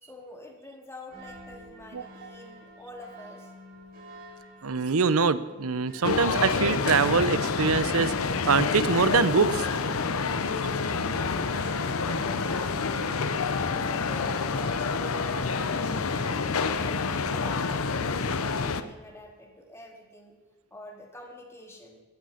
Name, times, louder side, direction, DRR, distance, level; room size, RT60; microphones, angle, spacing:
voice 1, 0.0-3.5 10.7-13.1 13.5-20.4 20.7-22.0, left 1 dB, 10° left, 1 dB, 2.2 m, -46 dB
sound 1, 1.1-19.0, right 1 dB, 45° right, 4.9 m, -50 dB
voice 2, 4.6-8.1 8.4-9.7, right 5 dB, 90° right, 15 dB, 0.7 m, -24 dB
sound 2, 6.0-18.8, left 4 dB, 80° left, 0.7 m, -28 dB
15.5 x 9.0 x 5.8 m, 1.3 s
head